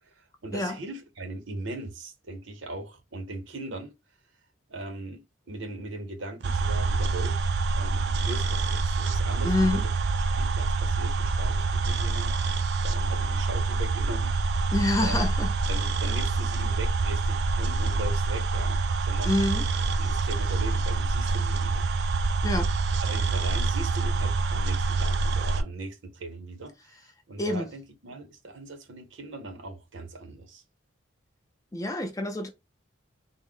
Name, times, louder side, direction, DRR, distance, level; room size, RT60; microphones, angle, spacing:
voice 1, 0.1-3.9 4.7-7.4 7.8-9.9 10.4-14.7 15.0-15.3 15.7-19.3 20.0-21.9 23.0-30.6, right 2 dB, 75° right, 0.8 m, -39 dB
sound 1, 6.4-25.6, right 3 dB, 60° right, 0.4 m, -26 dB
voice 2, 9.4-9.8 14.7-15.5 19.2-19.6 22.4-22.7 27.4-27.7 31.7-32.5, left 2 dB, 15° left, 0.5 m, -26 dB
3.5 x 2.1 x 3.6 m
head